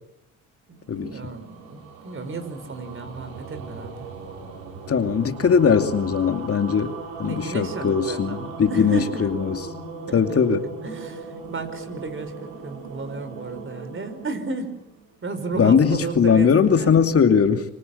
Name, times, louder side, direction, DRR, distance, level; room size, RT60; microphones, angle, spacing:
voice 1, 0.7-4.1 7.2-9.3 10.1-10.2 10.8-14.7 15.2-16.9, right 4 dB, 35° right, 9 dB, 5.3 m, -33 dB
sound 1, 0.8-15.2, right 4 dB, 90° right, 5.0 m, -39 dB
voice 2, 4.9-6.9 7.2-9.6 10.1-10.7 15.6-17.7, left 6 dB, 45° left, 7 dB, 2.7 m, -20 dB
26.0 x 24.5 x 8.6 m, 0.90 s
supercardioid pair, 65°, 33 cm